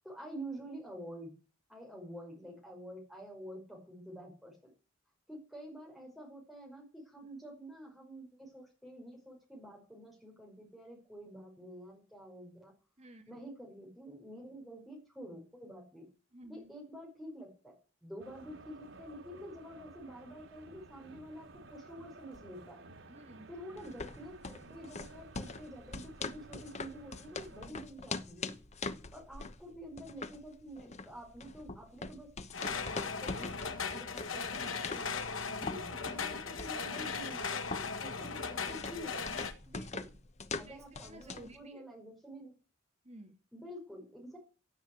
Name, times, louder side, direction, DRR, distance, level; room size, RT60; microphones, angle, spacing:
voice 1, 0.0-1.3 1.7-4.7 5.3-12.7 13.3-16.1 16.5-17.7 18.0-22.8 23.5-28.5 29.1-32.3 32.6-35.2 35.6-39.2 40.6-42.5 43.5-44.4, equal, ahead, -2 dB, 5.6 m, -48 dB
voice 2, 16.3-16.7 23.1-23.5 35.5-35.7 39.7-40.2 40.5-41.8 43.0-43.3, right 1 dB, 35° right, 4 dB, 2.6 m, -53 dB
sound 1, 18.2-27.7, right 3 dB, 75° right, 2.7 m, -55 dB
sound 2, 23.8-41.6, left 3 dB, 35° left, 0.9 m, -43 dB
sound 3, 32.5-39.5, left 5 dB, 85° left, 1.9 m, -38 dB
16.5 x 8.2 x 8.1 m, 0.36 s
head